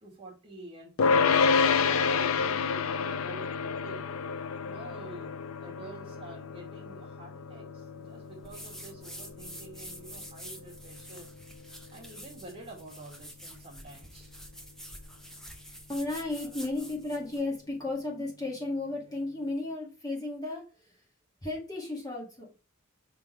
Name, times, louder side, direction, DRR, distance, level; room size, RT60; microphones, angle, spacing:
voice 1, 0.0-4.1 4.6-11.3 11.9-14.3, right 2 dB, 25° right, -2 dB, 2.0 m, -48 dB
sound 1, 1.0-12.3, left 5 dB, 85° left, 0.5 m, -29 dB
sound 2, 8.4-17.5, equal, ahead, 0.9 m, -47 dB
voice 2, 15.9-21.0 21.4-22.5, left 2 dB, 20° left, -3 dB, 1.9 m, -34 dB
5.8 x 4.0 x 4.3 m, 0.32 s
head